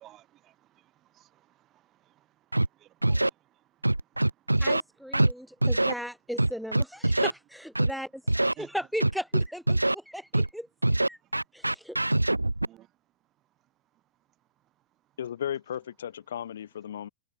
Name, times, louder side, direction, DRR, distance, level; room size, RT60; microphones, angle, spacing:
voice 1, 0.0-2.3 2.7-3.6 4.5-4.6 8.6-8.7 12.6-12.9, right 14 dB, 35° right, 1.8 m, -55 dB
Scratching (performance technique), 2.5-2.7 3.0-3.3 3.8-4.8 5.1-5.3 5.6-5.9 6.4-7.3 7.8-7.9 8.3-8.5 9.0-9.9 10.3-10.5 10.8-12.7, right 2 dB, 85° right, 0.5 m, -23 dB
voice 2, 4.6-10.7 11.1-12.2, equal, ahead, 0.6 m, -37 dB
voice 3, 15.2-17.1, left 9 dB, 65° left, 2.4 m, -35 dB
figure-of-eight pair, 90°, 0 cm